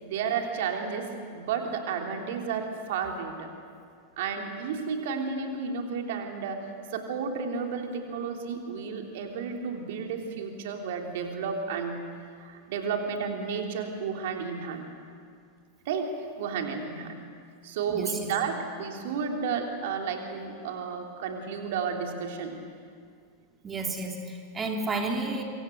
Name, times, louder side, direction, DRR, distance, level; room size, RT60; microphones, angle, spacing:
voice 1, 0.0-3.5 4.2-12.0 12.4-14.9 15.9-16.1 16.4-17.2 17.6-22.6, right 6 dB, 55° right, 3 dB, 3.5 m, -32 dB
voice 2, 17.9-18.3 23.6-25.4, right 3 dB, 20° right, 2 dB, 3.6 m, -31 dB
26.0 x 25.0 x 8.1 m, 2.2 s
figure-of-eight pair, 90°, 0 cm